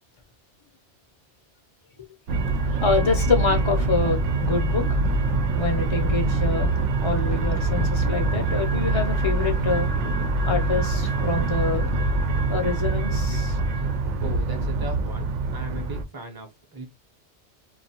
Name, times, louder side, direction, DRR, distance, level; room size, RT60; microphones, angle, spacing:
sound 1, 2.3-16.0, right 3 dB, 85° right, 0.9 m, -24 dB
voice 1, 2.8-5.0 5.5-6.7 7.0-9.9 10.5-11.9 12.5-13.6, left 4 dB, 35° left, 0.5 m, -26 dB
voice 2, 14.2-16.9, right 2 dB, 25° right, 0.6 m, -37 dB
2.5 x 2.3 x 2.7 m
omnidirectional pair, 1.2 m